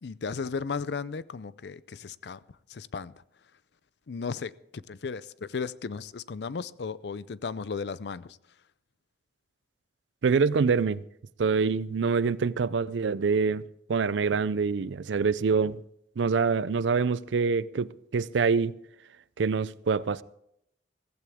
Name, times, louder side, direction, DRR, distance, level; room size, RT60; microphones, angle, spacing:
voice 1, 0.0-2.4 2.7-3.2 4.1-8.4, left 5 dB, 65° left, 0.5 m, -35 dB
voice 2, 10.2-11.0 11.4-15.8 16.2-18.7 19.4-20.2, right 5 dB, 85° right, 0.5 m, -25 dB
15.5 x 15.0 x 3.6 m
head